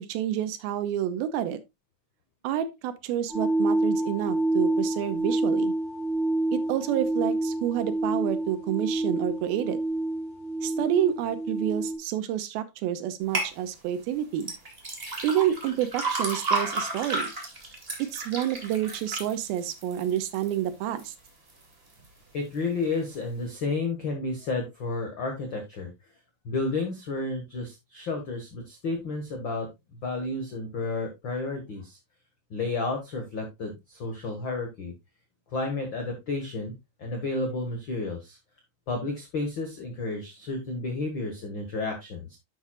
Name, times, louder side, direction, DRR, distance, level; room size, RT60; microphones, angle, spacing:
voice 1, 0.0-1.6 2.4-5.7 6.5-9.8 10.6-14.5 15.2-17.3 18.1-21.1, right 11 dB, 85° right, 2.6 m, -29 dB
sound 1, 3.3-12.0, right 2 dB, 5° left, 4.6 m, -28 dB
sound 2, 13.3-13.5 14.4-20.5 21.0-21.5 22.0-22.1, right 3 dB, 20° right, 1.8 m, -32 dB
voice 2, 22.3-25.9 26.4-29.7 30.0-32.0 32.5-34.9 35.5-36.7 37.0-38.4 38.9-42.4, left 3 dB, 55° left, 1.3 m, -31 dB
11.0 x 7.4 x 2.3 m
omnidirectional pair, 4.4 m